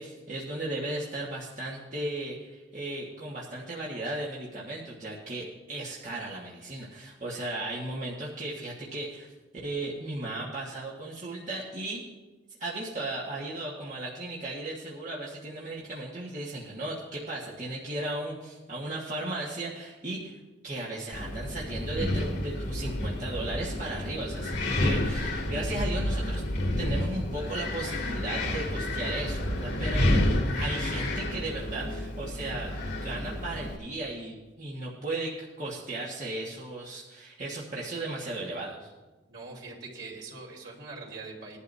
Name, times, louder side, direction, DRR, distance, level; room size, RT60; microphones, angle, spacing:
voice 1, 0.0-9.3 9.6-12.0 12.6-20.4 20.6-26.4 26.8-30.1 30.4-32.7 33.0-38.9, right 2 dB, 40° right, -5 dB, 1.5 m, -36 dB
Wind, 21.1-33.8, left 1 dB, 60° left, 2.2 m, -30 dB
voice 2, 39.3-41.6, right 3 dB, 75° right, -3 dB, 3.6 m, -42 dB
19.5 x 11.5 x 2.7 m, 1.2 s
head